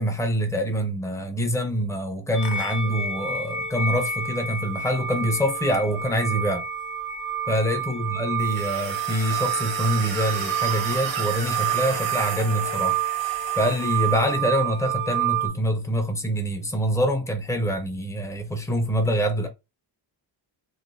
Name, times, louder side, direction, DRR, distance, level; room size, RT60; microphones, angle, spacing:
voice 1, 0.0-6.6 7.5-13.0 13.6-19.5, equal, 5° left, 0.4 m, -25 dB
sound 1, 2.3-15.5, right 8 dB, 60° left, 0.8 m, -29 dB
sound 2, 8.4-14.4, right 7 dB, 70° right, 0.8 m, -33 dB
3.1 x 2.1 x 2.4 m
wide cardioid pair, 170°, 47 cm